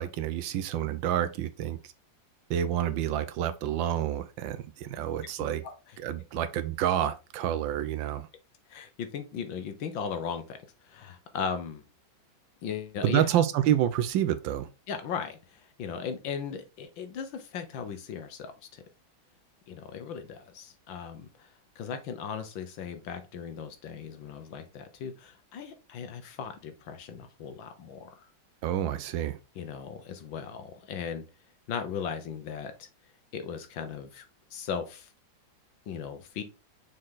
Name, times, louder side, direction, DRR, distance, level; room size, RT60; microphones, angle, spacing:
voice 1, 0.0-1.9 2.5-5.6 6.0-8.3 13.0-14.7 28.6-29.4, right 11 dB, 85° right, 1.4 m, -28 dB
voice 2, 5.4-5.7 8.7-10.6 10.8-11.8 12.6-13.3 14.9-18.8 19.7-21.5 21.8-28.2 29.6-31.2 31.7-32.9 33.3-34.3 34.5-35.1 35.9-36.4, left 7 dB, 80° left, 1.8 m, -37 dB
6.2 x 4.5 x 3.8 m
omnidirectional pair, 2.1 m